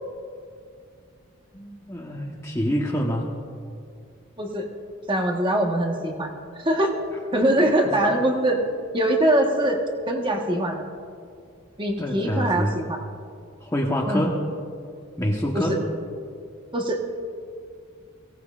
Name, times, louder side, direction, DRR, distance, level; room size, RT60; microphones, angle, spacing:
voice 1, 1.5-3.3 7.6-7.7 12.0-12.7 13.6-14.4 15.2-15.8, equal, 15° left, -2 dB, 1.2 m, -26 dB
voice 2, 5.1-6.3 6.6-7.0 7.3-8.6 8.9-10.8 11.8-13.0 14.1-14.3 15.5-15.8 16.7-17.0, right 1 dB, 25° right, 1 dB, 1.3 m, -23 dB
23.5 x 17.0 x 2.5 m, 2.3 s
head